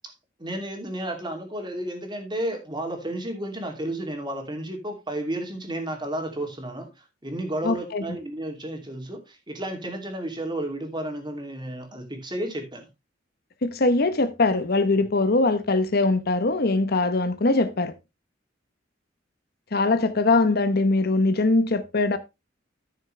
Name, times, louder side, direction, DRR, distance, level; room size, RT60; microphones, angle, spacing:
voice 1, 0.4-12.9, right 1 dB, 25° right, 2.7 m, -32 dB
voice 2, 7.6-8.0 13.6-17.9 19.7-22.2, left 2 dB, 55° left, 0.9 m, -22 dB
13.5 x 6.8 x 3.2 m
head